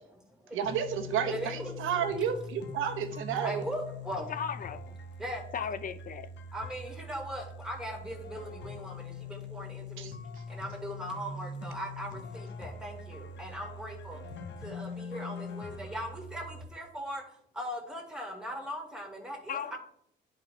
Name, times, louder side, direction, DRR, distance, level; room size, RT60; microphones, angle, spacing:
voice 1, 0.5-3.6 10.0-10.4, right 8 dB, 85° right, 0.9 m, -32 dB
sound 1, 0.6-16.6, left 3 dB, 65° left, 0.9 m, -43 dB
voice 2, 1.3-1.7 2.0-2.1 3.4-4.3 5.2-5.4 6.5-10.1 10.5-14.2 14.6-19.8, equal, 5° right, 1.9 m, -39 dB
voice 3, 4.3-5.0 5.5-6.3 19.5-19.8, left 7 dB, 45° left, 0.4 m, -36 dB
10.5 x 4.3 x 3.2 m
cardioid pair, 90°, 20 cm